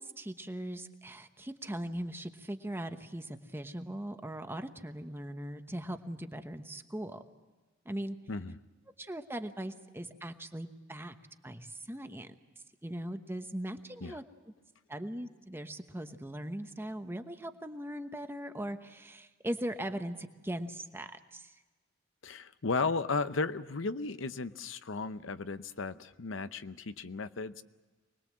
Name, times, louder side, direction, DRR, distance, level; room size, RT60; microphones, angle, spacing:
voice 1, 0.0-7.2 7.8-8.2 9.0-11.1 11.4-12.3 12.8-14.2 14.9-21.5, right 1 dB, 10° right, 7 dB, 1.1 m, -40 dB
voice 2, 8.3-8.6 14.0-14.2 22.2-27.6, left 4 dB, 85° left, 12 dB, 0.8 m, -35 dB
24.5 x 20.0 x 7.5 m, 1.3 s
head